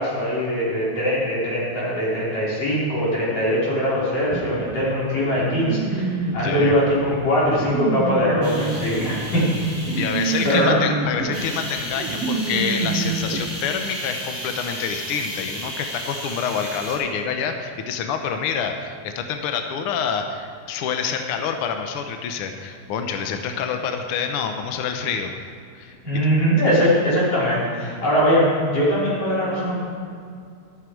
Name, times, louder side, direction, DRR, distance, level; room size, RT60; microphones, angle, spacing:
voice 1, 0.0-9.6 9.9-10.1 10.4-10.8 26.0-29.8, equal, 55° left, -8 dB, 5.1 m, -21 dB
sound 1, 4.3-13.4, right 4 dB, 70° right, 1.5 m, -28 dB
voice 2, 6.4-6.7 10.0-25.3 25.7-26.0, left 6 dB, 75° left, 5 dB, 1.3 m, -27 dB
sound 2, 8.4-10.7 11.3-17.0, equal, 15° right, 3.0 m, -34 dB
13.0 x 12.0 x 4.6 m, 2.3 s
omnidirectional pair, 3.4 m